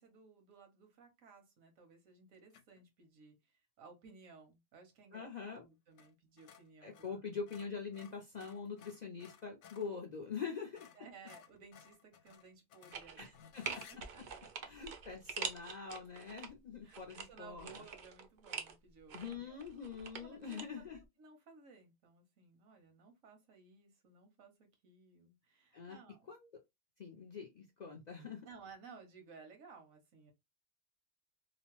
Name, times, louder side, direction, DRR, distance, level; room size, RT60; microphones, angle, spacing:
voice 1, 0.0-7.2 11.0-13.2 13.7-14.7 16.8-19.6 20.2-20.6 20.9-26.3 28.4-30.3, right 4 dB, 85° right, 1.3 m, -58 dB
sound 1, 2.5-2.8 5.9-6.1 6.4-9.9 10.4-10.5 10.7-14.0, left 8 dB, 70° left, 0.8 m, -59 dB
voice 2, 5.1-5.7 6.8-10.9 13.2-13.7 14.6-17.8 19.1-21.0 25.7-26.0 26.3-26.4 27.0-28.5, left 5 dB, 55° left, 0.5 m, -44 dB
sound 2, 12.9-13.4 13.7-16.5 16.9-18.7 19.1-20.6 20.9-21.0, right 6 dB, 60° right, 0.5 m, -44 dB
2.9 x 2.0 x 2.9 m
omnidirectional pair, 1.3 m